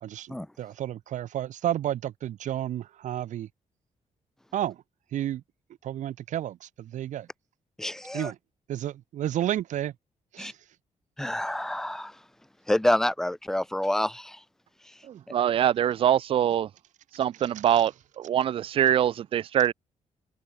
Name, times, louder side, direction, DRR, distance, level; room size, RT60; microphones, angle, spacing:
voice 1, 0.0-3.5 4.5-4.8 5.1-5.4 5.8-7.3 8.1-8.4 8.7-9.9 10.3-10.5, right 12 dB, 80° right, 2.3 m, -31 dB
voice 2, 7.8-8.3 10.4-10.5 11.2-12.1 12.7-14.4, left 1 dB, 5° left, 0.6 m, -27 dB
voice 3, 15.1-16.7 17.1-19.7, right 10 dB, 45° right, 0.4 m, -24 dB
open air
wide cardioid pair, 170°, 13 cm